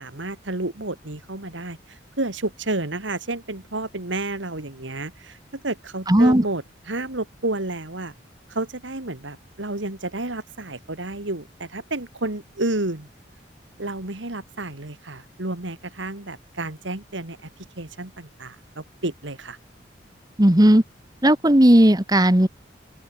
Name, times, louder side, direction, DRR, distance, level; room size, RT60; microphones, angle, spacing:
voice 1, 0.0-8.1 8.5-13.1 13.8-17.4 17.8-19.6, right 2 dB, 80° right, 2.5 m, -31 dB
voice 2, 6.1-6.4 20.4-20.8 21.2-22.5, right 1 dB, 20° right, 1.4 m, -15 dB
open air
head